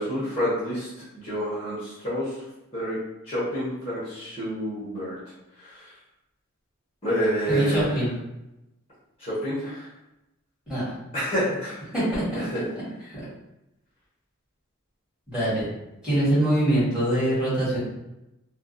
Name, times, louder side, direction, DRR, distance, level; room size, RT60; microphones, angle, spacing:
voice 1, 0.0-2.4 2.7-3.0 3.2-5.2 5.6-5.9 7.0-8.0 9.2-9.9 11.1-11.9 12.3-12.6, equal, 25° left, -10 dB, 0.8 m, -28 dB
voice 2, 7.5-8.1 10.7-10.8 11.9-12.2 13.1-13.2 15.3-15.7 16.0-17.8, right 1 dB, 5° right, -12 dB, 1.2 m, -23 dB
2.4 x 2.2 x 2.5 m, 0.92 s
head